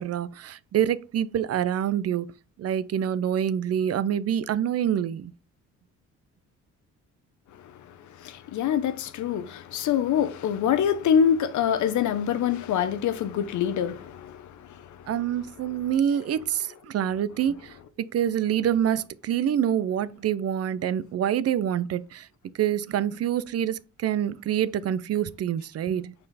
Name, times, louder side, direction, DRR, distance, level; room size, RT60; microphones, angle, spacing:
voice 1, 0.0-2.3 2.6-5.3 15.1-17.7 18.1-22.3 22.6-26.1, right 10 dB, 55° right, 0.5 m, -26 dB
voice 2, 8.2-14.9, left 8 dB, 75° left, 0.9 m, -25 dB
5.3 x 4.4 x 4.1 m
cardioid pair, 90°, 30 cm